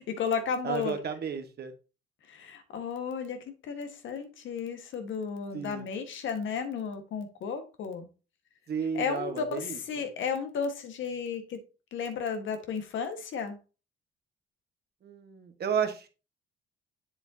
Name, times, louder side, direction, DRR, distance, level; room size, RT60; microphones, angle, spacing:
voice 1, 0.0-1.0 2.3-3.4 3.7-8.1 8.9-11.6 11.9-13.6, left 6 dB, 75° left, 6 dB, 1.6 m, -33 dB
voice 2, 0.6-1.7 5.5-5.8 8.7-9.8 15.0-16.1, right 7 dB, 55° right, 7 dB, 1.4 m, -33 dB
8.1 x 6.9 x 2.8 m, 0.32 s
cardioid pair, 90°, 20 cm